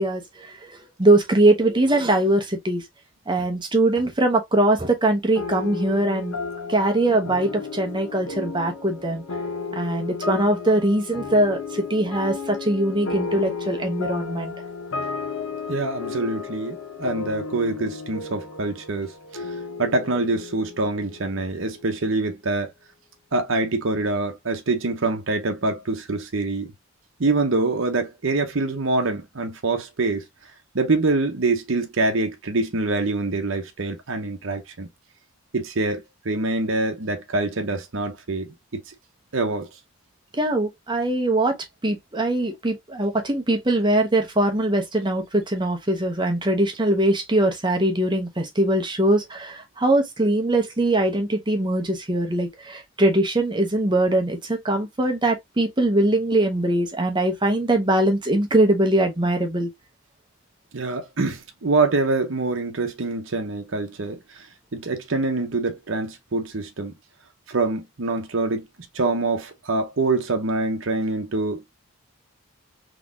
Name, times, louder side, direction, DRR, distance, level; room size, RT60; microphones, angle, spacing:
voice 1, 0.0-2.8 3.3-6.4 6.7-9.2 9.7-14.5 40.3-41.6 41.8-59.7, right 1 dB, 20° right, 0.8 m, -22 dB
sound 1, 5.3-22.1, left 4 dB, 75° left, 0.8 m, -33 dB
voice 2, 15.7-19.4 19.8-22.7 23.3-26.7 27.2-30.2 30.7-34.9 35.5-38.8 39.3-39.7 60.7-64.5 64.7-66.9 67.5-68.7 68.9-71.7, right 3 dB, 60° right, 0.8 m, -25 dB
3.9 x 3.0 x 2.4 m
head